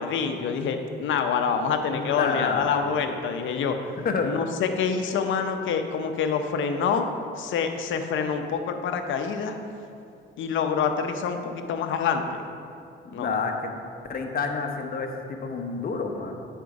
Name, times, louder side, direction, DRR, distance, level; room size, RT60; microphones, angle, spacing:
voice 1, 0.0-3.8 4.2-7.1 7.4-9.6 10.4-12.4 13.1-13.3, left 6 dB, 75° left, 6 dB, 0.7 m, -26 dB
voice 2, 1.9-2.8 4.0-4.3 13.1-13.6 14.1-16.5, left 5 dB, 50° left, 4 dB, 0.9 m, -29 dB
9.1 x 4.5 x 4.9 m, 2.5 s
cardioid pair, 90°, 20 cm